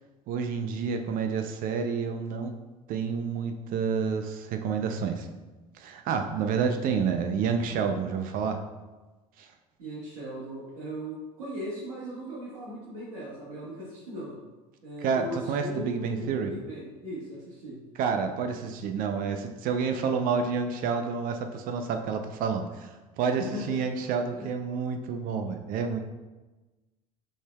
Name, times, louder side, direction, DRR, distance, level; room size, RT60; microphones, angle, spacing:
voice 1, 0.3-2.5 2.9-5.3 5.7-8.6 9.4-9.5 15.0-16.5 18.0-26.0, right 6 dB, 50° right, 6 dB, 0.5 m, -29 dB
voice 2, 9.8-14.3 14.8-17.8 23.4-23.7 24.3-24.5, equal, 70° right, -8 dB, 1.5 m, -38 dB
6.1 x 3.5 x 2.3 m, 1.2 s
hypercardioid pair, 70°, 19 cm